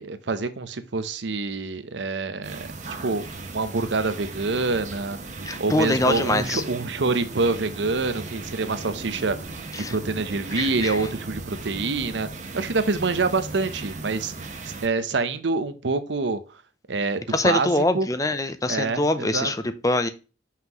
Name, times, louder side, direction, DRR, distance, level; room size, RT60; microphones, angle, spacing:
voice 1, 0.0-2.7 3.0-3.3 3.5-5.2 5.6-9.4 9.8-12.3 12.5-14.3 14.8-16.4 16.9-17.7 17.9-18.1 18.7-19.5, right 3 dB, 80° right, 11 dB, 0.8 m, -26 dB
sound 1, 2.4-14.9, right 3 dB, 40° right, 1.0 m, -37 dB
voice 2, 5.4-6.6 9.7-10.0 10.5-11.0 17.3-20.1, left 2 dB, 20° left, 11 dB, 0.5 m, -24 dB
5.8 x 5.7 x 3.0 m, 0.32 s
head